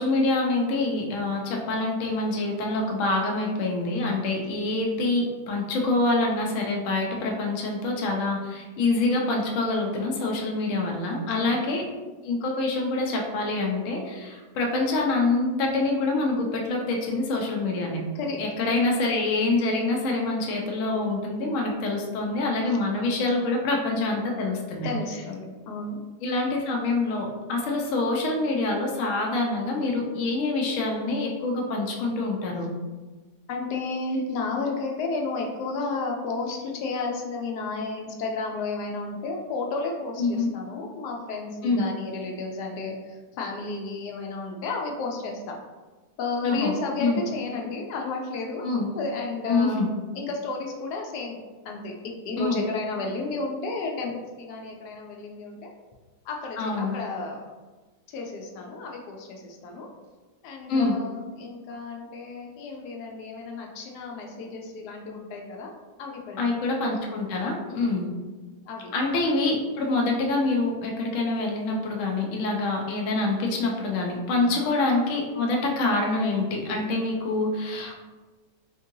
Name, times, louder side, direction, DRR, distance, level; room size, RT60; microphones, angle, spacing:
voice 1, 0.0-11.8 12.2-18.0 18.4-24.9 26.2-32.7 40.2-40.5 41.6-41.9 46.4-46.7 47.0-47.2 48.6-48.9 49.5-49.9 52.4-52.6 56.6-56.9 60.7-60.9 66.4-68.1 68.9-78.0, left 2 dB, 65° left, 0 dB, 0.9 m, -26 dB
voice 2, 11.3-11.7 18.1-18.4 24.8-26.0 33.5-45.5 46.2-48.6 49.0-49.9 50.1-51.4 51.6-55.7 56.3-57.4 58.1-59.9 60.4-65.7 66.0-66.6 67.7-68.1 68.7-68.9 74.4-74.7, left 3 dB, 85° left, 1 dB, 1.1 m, -32 dB
3.6 x 2.6 x 2.6 m, 1.3 s
omnidirectional pair, 1.7 m